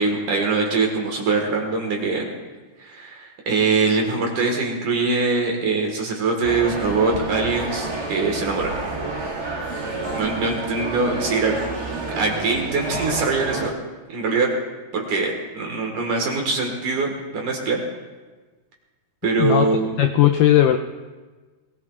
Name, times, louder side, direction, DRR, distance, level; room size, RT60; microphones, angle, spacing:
voice 1, 0.0-2.3 2.8-8.8 10.1-11.6 12.2-13.7 14.1-14.5 14.9-17.8 19.2-20.0, right 3 dB, 60° right, 1 dB, 2.8 m, -23 dB
sound 1, 6.4-13.7, right 3 dB, 35° right, 1.8 m, -29 dB
voice 2, 20.0-20.8, left 12 dB, 90° left, 5 dB, 1.9 m, -16 dB
21.5 x 17.5 x 2.4 m, 1.3 s
omnidirectional pair, 4.4 m